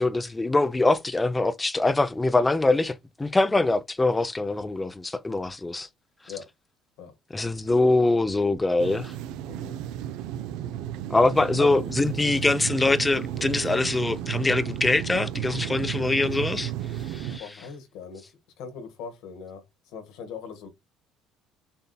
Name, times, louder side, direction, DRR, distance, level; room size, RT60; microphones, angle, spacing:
voice 1, 0.0-5.9 7.3-9.1 11.1-16.7 17.0-17.4, left 2 dB, 15° left, 0.5 m, -23 dB
sound 1, 8.8-17.4, right 11 dB, 80° right, 0.4 m, -33 dB
voice 2, 17.4-18.3 18.6-20.7, left 6 dB, 80° left, 1.3 m, -40 dB
6.8 x 2.7 x 2.2 m
cardioid pair, 110°, 0 cm